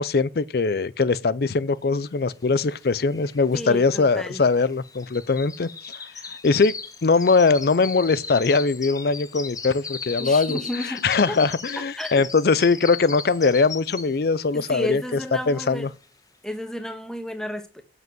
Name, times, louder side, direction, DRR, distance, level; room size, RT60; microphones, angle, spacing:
voice 1, 0.0-6.0 6.3-6.7 7.0-15.0 15.5-15.9, left 4 dB, 60° left, 0.5 m, -21 dB
sound 1, 2.6-2.7 2.9-14.3 14.7-15.1 15.5-15.6, left 5 dB, 20° left, 1.3 m, -37 dB
voice 2, 3.5-4.4 10.2-11.4 12.0-12.2 14.5-15.9 16.4-17.8, left 1 dB, 5° left, 1.3 m, -32 dB
7.9 x 7.6 x 7.7 m
head